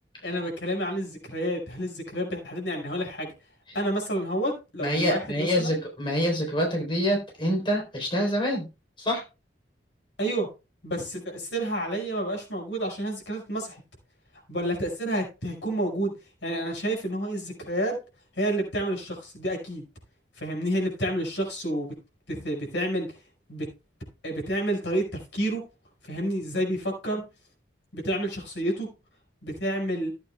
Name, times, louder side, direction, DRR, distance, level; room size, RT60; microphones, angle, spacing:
voice 1, 0.2-3.3 3.7-5.8 10.2-10.5 10.8-13.8 14.5-16.1 16.4-18.0 18.4-19.8 20.4-21.9 22.3-23.1 23.5-23.7 24.2-25.6 26.0-27.2 27.9-28.9 29.4-30.1, right 1 dB, 75° left, 1 dB, 5.4 m, -29 dB
voice 2, 4.8-8.7 9.0-9.2, equal, 30° left, 0 dB, 3.9 m, -26 dB
16.5 x 8.8 x 2.3 m, 0.29 s
head